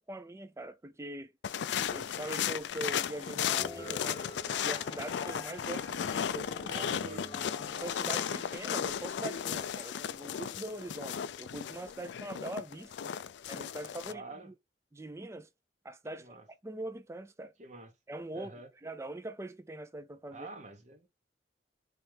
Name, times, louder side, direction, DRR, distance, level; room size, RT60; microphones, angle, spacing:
voice 1, 0.0-1.3 1.7-4.2 4.6-6.7 7.8-13.2 13.5-14.5 14.9-15.5 15.8-16.4 16.6-17.5 18.1-18.5 18.8-20.5, right 1 dB, 15° right, 0.5 m, -42 dB
sound 1, 1.4-14.1, left 8 dB, 75° left, 0.3 m, -35 dB
sound 2, 3.4-9.1, left 3 dB, 25° left, 0.8 m, -47 dB
voice 2, 6.7-7.3 14.1-14.5 16.1-16.5 17.6-17.9 18.3-18.7 20.3-21.1, right 3 dB, 40° right, 0.9 m, -46 dB
4.2 x 3.3 x 3.4 m
head